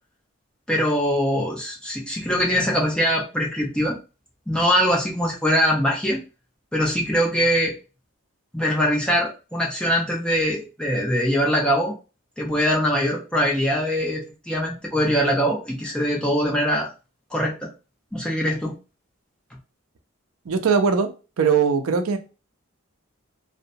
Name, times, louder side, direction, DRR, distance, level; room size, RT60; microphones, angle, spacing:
voice 1, 0.7-4.0 4.5-6.2 6.7-7.7 8.5-11.9 12.4-16.9 17.3-17.7 18.1-18.8, equal, 5° left, -2 dB, 0.5 m, -22 dB
voice 2, 20.5-21.1 21.4-22.2, right 6 dB, 80° right, 7 dB, 0.5 m, -20 dB
2.7 x 2.1 x 2.5 m, 0.32 s
head